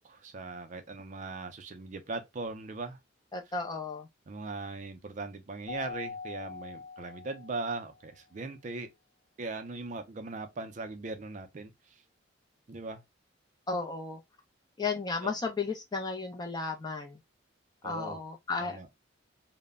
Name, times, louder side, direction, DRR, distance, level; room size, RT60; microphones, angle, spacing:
voice 1, 0.0-3.0 4.3-8.9 9.4-11.7 12.7-13.0 15.2-15.3 17.8-18.2 18.6-18.9, right 3 dB, 40° right, 0.4 m, -39 dB
voice 2, 3.3-4.1 13.7-14.2 14.8-17.2 17.8-18.8, left 4 dB, 20° left, 0.5 m, -34 dB
Keyboard (musical), 5.7-7.9, left 4 dB, 55° left, 0.8 m, -43 dB
2.1 x 2.0 x 3.4 m
head